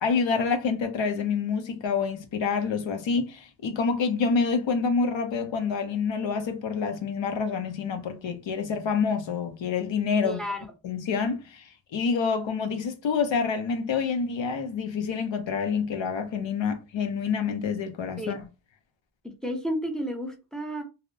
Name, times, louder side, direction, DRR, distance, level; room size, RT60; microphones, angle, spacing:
voice 1, 0.0-10.4 10.8-18.5, left 5 dB, 65° left, 0.6 m, -27 dB
voice 2, 10.2-10.6 18.2-18.3 19.4-20.8, equal, ahead, 0.6 m, -31 dB
2.7 x 2.0 x 2.6 m
wide cardioid pair, 90°, 48 cm